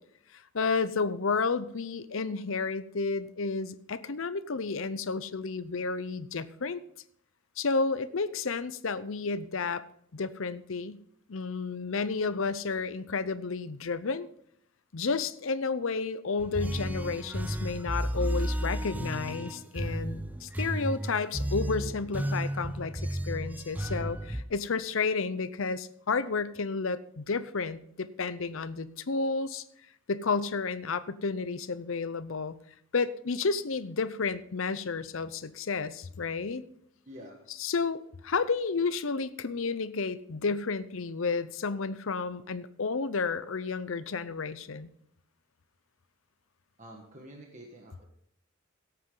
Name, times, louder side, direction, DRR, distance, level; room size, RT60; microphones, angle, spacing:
voice 1, 0.3-6.8 7.6-9.8 10.1-11.0 11.3-14.3 14.9-29.6 30.1-32.6 32.9-36.6 37.6-44.9, left 4 dB, 70° left, 14 dB, 0.7 m, -31 dB
sound 1, 16.4-24.4, right 1 dB, 10° right, 0.4 m, -33 dB
voice 2, 37.0-37.4 46.8-48.1, equal, 35° right, 0 dB, 1.5 m, -48 dB
17.0 x 8.4 x 3.9 m, 0.70 s
head